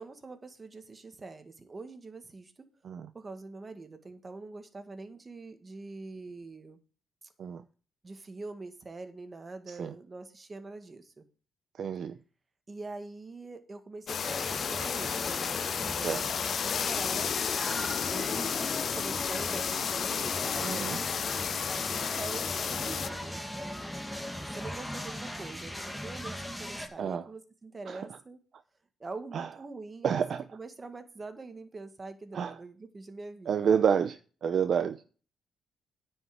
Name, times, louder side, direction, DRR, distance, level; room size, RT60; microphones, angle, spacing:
voice 1, 0.0-2.5 3.1-6.8 7.2-7.3 8.0-11.2 12.7-17.3 17.9-18.5 18.9-21.0 21.9-23.4 24.4-28.4 29.0-30.2 30.5-33.8, right 3 dB, 30° right, 1.9 m, -44 dB
voice 2, 11.8-12.1 16.0-16.2 20.6-21.0 27.0-27.2 27.9-28.0 29.3-29.4 30.0-30.4 32.3-32.5 33.5-34.2 34.4-35.0, right 7 dB, 60° right, 0.6 m, -28 dB
sound 1, 14.1-23.1, left 7 dB, 55° left, 0.5 m, -32 dB
sound 2, 14.2-26.9, left 1 dB, ahead, 2.0 m, -39 dB
9.7 x 5.7 x 7.7 m
cardioid pair, 90°, 0 cm